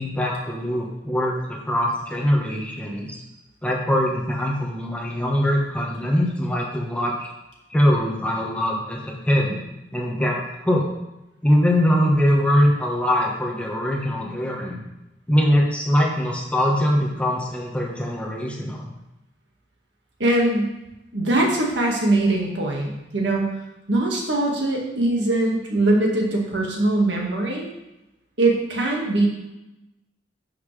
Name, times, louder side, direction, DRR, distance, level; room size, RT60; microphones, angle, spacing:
voice 1, 0.0-3.2 3.6-7.3 7.7-9.6 9.9-10.9 11.4-14.8 15.3-18.9, equal, 5° left, -2 dB, 1.3 m, -22 dB
voice 2, 20.2-20.7 21.1-23.5 23.9-27.7 28.4-29.3, right 2 dB, 75° right, -1 dB, 1.9 m, -21 dB
11.5 x 5.8 x 3.3 m, 0.96 s
head